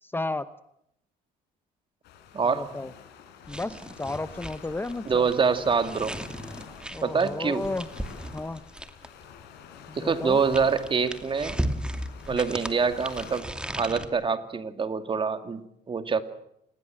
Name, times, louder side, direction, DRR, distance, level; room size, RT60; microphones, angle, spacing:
voice 1, 0.0-0.4 2.6-2.9 3.5-5.3 6.9-7.9 8.3-8.6 9.9-10.4, left 2 dB, 10° left, 13 dB, 0.9 m, -33 dB
sound 1, 2.0-13.4, left 8 dB, 85° left, 5.5 m, -47 dB
voice 2, 2.3-2.8 5.0-6.1 7.0-7.7 9.9-11.6 12.3-15.6 15.9-16.2, right 5 dB, 30° right, 9 dB, 2.5 m, -25 dB
sound 2, 3.4-9.2 10.1-14.1, right 1 dB, 5° right, 2.5 m, -36 dB
27.5 x 20.5 x 7.7 m, 0.76 s
cardioid pair, 110°, 17 cm